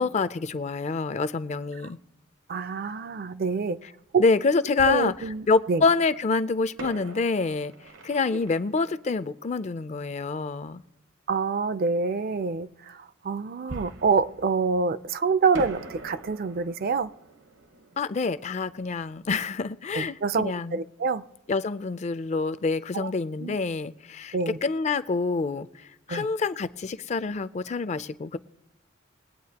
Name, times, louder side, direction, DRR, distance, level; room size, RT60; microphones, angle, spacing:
voice 1, 0.0-2.0 4.2-5.1 5.5-7.7 8.0-10.8 18.0-20.8 21.5-28.4, left 4 dB, 35° left, 0.4 m, -27 dB
voice 2, 2.5-3.8 4.1-4.2 4.8-5.8 11.3-17.1 19.9-21.3 22.9-23.1 23.4-23.6 24.3-24.6 26.1-26.3, right 4 dB, 50° right, 0.4 m, -26 dB
Fireworks, 4.8-5.9 6.8-10.2 13.7-15.1 15.5-20.1 20.3-20.4 21.0-21.2, right 2 dB, 75° right, 1.0 m, -44 dB
22.0 x 8.8 x 2.9 m
head